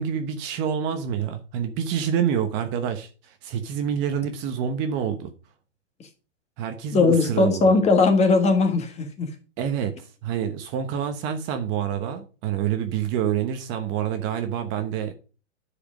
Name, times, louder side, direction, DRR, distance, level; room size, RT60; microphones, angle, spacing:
voice 1, 0.0-5.3 6.6-7.8 9.6-15.2, right 8 dB, 30° right, 1.0 m, -27 dB
voice 2, 6.9-9.3, left 3 dB, 15° left, 1.6 m, -19 dB
10.5 x 5.0 x 5.1 m
hypercardioid pair, 135°, 37 cm